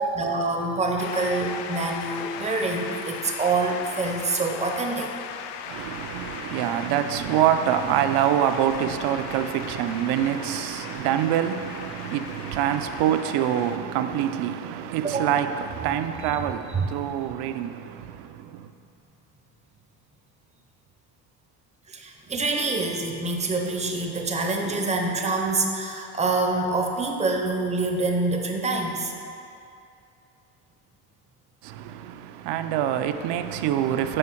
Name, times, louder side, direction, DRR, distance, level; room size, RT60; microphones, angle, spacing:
voice 1, 0.0-5.1 15.0-15.2 16.7-16.9 21.9-29.1, right 3 dB, 15° right, 0.5 m, -26 dB
Shout / Cheering / Applause, 1.0-13.8, left 8 dB, 75° left, 0.5 m, -38 dB
voice 2, 5.7-18.7 31.6-34.2, right 10 dB, 70° right, 0.5 m, -25 dB
10.0 x 3.9 x 4.4 m
cardioid pair, 155°, 42 cm